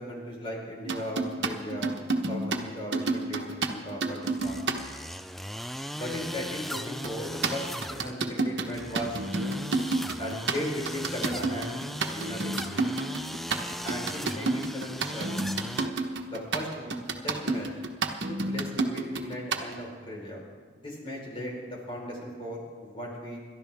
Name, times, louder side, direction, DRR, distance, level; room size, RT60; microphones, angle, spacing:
voice 1, 0.0-1.9 2.3-4.7 5.9-9.6 10.2-12.8 13.8-15.5 16.3-17.0 17.2-17.7 18.3-20.4 20.8-23.4, equal, 30° left, -2 dB, 4.2 m, -37 dB
sound 1, 0.9-4.8 7.0-19.7, right 3 dB, 85° right, 1.2 m, -30 dB
sound 2, 4.2-15.9, equal, ahead, 0.3 m, -38 dB
28.5 x 13.0 x 3.5 m, 1.5 s
head